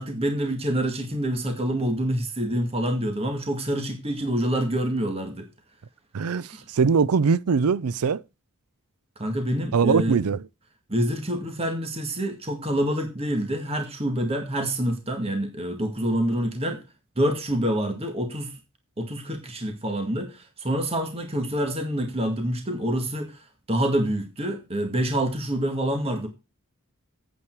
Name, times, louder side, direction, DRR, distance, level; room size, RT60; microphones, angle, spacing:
voice 1, 0.0-5.5 6.5-6.6 9.2-10.2 10.9-16.8 17.2-18.6 19.0-23.4 23.7-26.3, right 1 dB, 25° right, 1.9 m, -27 dB
voice 2, 6.1-8.2 9.7-10.4, right 5 dB, 80° right, 0.5 m, -22 dB
8.7 x 8.3 x 4.6 m
head